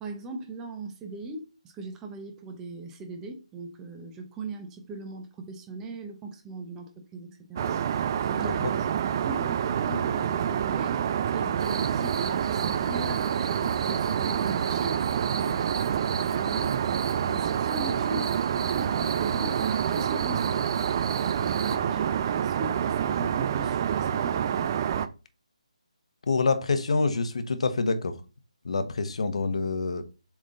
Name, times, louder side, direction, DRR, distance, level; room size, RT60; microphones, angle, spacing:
voice 1, 0.0-7.7 8.3-11.0 11.3-15.0 15.4-16.8 17.3-20.6 21.2-24.7, right 3 dB, 10° right, 0.8 m, -39 dB
Aircraft, 7.6-25.1, right 9 dB, 30° right, 0.4 m, -27 dB
sound 1, 11.6-21.8, right 5 dB, 50° right, 0.8 m, -36 dB
voice 2, 26.3-28.2 28.6-30.0, left 4 dB, 60° left, 1.1 m, -26 dB
7.3 x 3.7 x 3.8 m
figure-of-eight pair, 155°, 4 cm